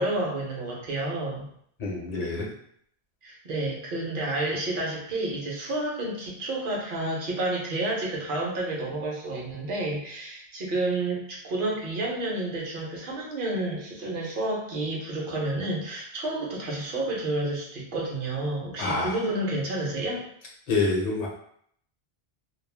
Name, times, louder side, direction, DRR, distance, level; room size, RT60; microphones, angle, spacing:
voice 1, 0.0-1.5 3.2-20.2, right 2 dB, 60° right, -3 dB, 0.9 m, -30 dB
voice 2, 1.8-2.5 18.8-19.2 20.7-21.3, left 3 dB, 45° left, -2 dB, 0.6 m, -27 dB
2.4 x 2.0 x 3.2 m, 0.66 s
omnidirectional pair, 1.1 m